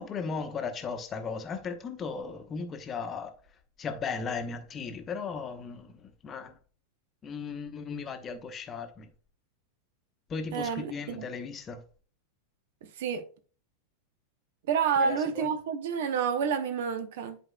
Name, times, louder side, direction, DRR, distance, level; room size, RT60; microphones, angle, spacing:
voice 1, 0.0-3.3 3.8-6.5 7.2-9.1 10.3-11.8 15.0-15.5, left 5 dB, 25° left, 0.9 m, -36 dB
voice 2, 10.5-11.3 12.8-13.3 14.7-17.4, right 6 dB, 55° right, 0.9 m, -29 dB
11.0 x 4.5 x 2.3 m
figure-of-eight pair, 90°, 0 cm